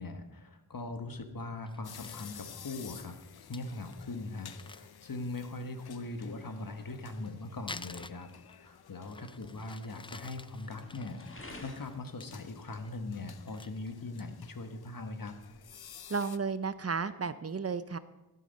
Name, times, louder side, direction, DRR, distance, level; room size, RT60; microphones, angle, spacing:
voice 1, 0.0-3.2 3.5-8.3 8.6-15.4, left 2 dB, 65° left, 8 dB, 1.3 m, -41 dB
sound 1, 1.5-17.0, left 2 dB, 35° left, 1.8 m, -58 dB
Crumpling crinkling, 1.6-2.4 2.9-3.0 3.3-3.4 3.5-3.6 3.9-4.0 4.4-5.6 6.8-8.7 9.1-12.3 12.7-12.9 13.2-14.5 14.9-15.0 15.4-15.8, left 3 dB, 15° left, 0.3 m, -50 dB
sound 2, 1.8-16.4, left 9 dB, 80° left, 0.6 m, -53 dB
voice 2, 16.1-18.0, right 5 dB, 40° right, 14 dB, 0.6 m, -33 dB
15.0 x 8.4 x 5.4 m, 1.0 s
wide cardioid pair, 65°, 37 cm